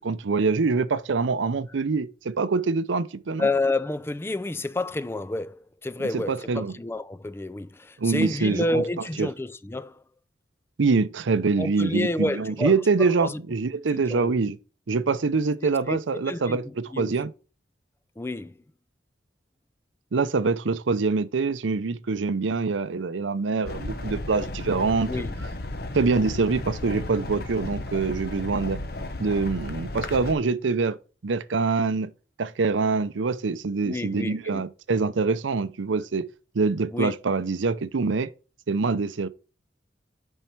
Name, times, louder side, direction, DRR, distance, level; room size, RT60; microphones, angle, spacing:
voice 1, 0.0-3.5 6.0-6.7 8.0-8.8 9.2-9.3 10.8-14.6 14.9-17.3 20.1-25.1 25.9-28.8 29.2-31.0 31.2-32.1 32.4-36.2 36.5-38.3 38.7-39.3, right 4 dB, 85° right, 0.6 m, -25 dB
voice 2, 3.4-10.0 11.6-12.7 13.0-13.4 13.9-14.4 15.6-16.0 16.3-16.6 16.9-17.1 18.2-18.5 25.1-25.5 33.8-34.6 36.9-37.1, left 2 dB, 15° left, 0.3 m, -29 dB
sound 1, 23.6-30.3, left 2 dB, 55° left, 1.0 m, -34 dB
9.1 x 5.5 x 4.5 m
head